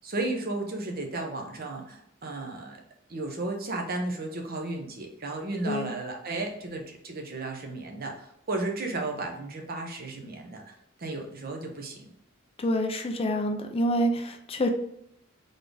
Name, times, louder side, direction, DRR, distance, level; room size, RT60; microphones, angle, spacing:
voice 1, 0.0-2.8 3.1-10.7 11.0-12.1, right 2 dB, 50° right, 2 dB, 0.8 m, -34 dB
voice 2, 12.6-14.7, equal, 30° left, 5 dB, 0.4 m, -27 dB
4.0 x 3.7 x 3.4 m, 0.72 s
head